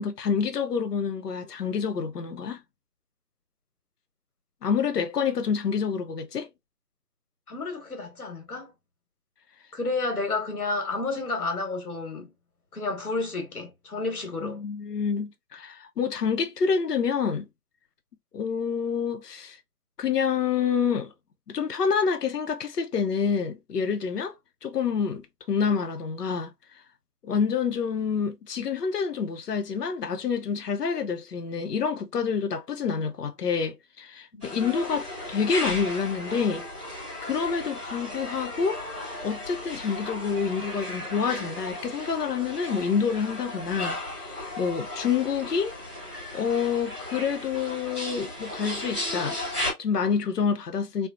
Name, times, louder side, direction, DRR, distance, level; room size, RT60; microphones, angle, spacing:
voice 1, 0.0-2.6 4.6-6.5 14.4-17.5 18.3-19.6 20.0-21.1 21.5-24.3 24.6-26.5 27.2-36.6 37.2-38.8 39.2-45.8 46.3-51.1, left 6 dB, 85° left, 0.6 m, -27 dB
voice 2, 7.5-8.7 9.7-12.3 12.7-14.6 34.3-34.4, left 3 dB, 70° left, 1.4 m, -31 dB
sound 1, 34.4-49.7, left 1 dB, 20° left, 1.2 m, -35 dB
3.2 x 2.0 x 2.4 m
figure-of-eight pair, 175°, 46 cm